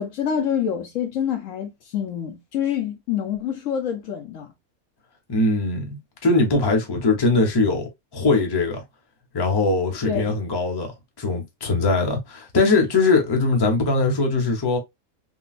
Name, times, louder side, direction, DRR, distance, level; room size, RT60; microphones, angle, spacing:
voice 1, 0.0-4.5 10.1-10.4, left 8 dB, 70° left, 1.0 m, -26 dB
voice 2, 5.3-8.8 9.3-10.9 11.2-14.8, left 3 dB, 20° left, 0.8 m, -21 dB
3.7 x 2.3 x 2.4 m
omnidirectional pair, 1.5 m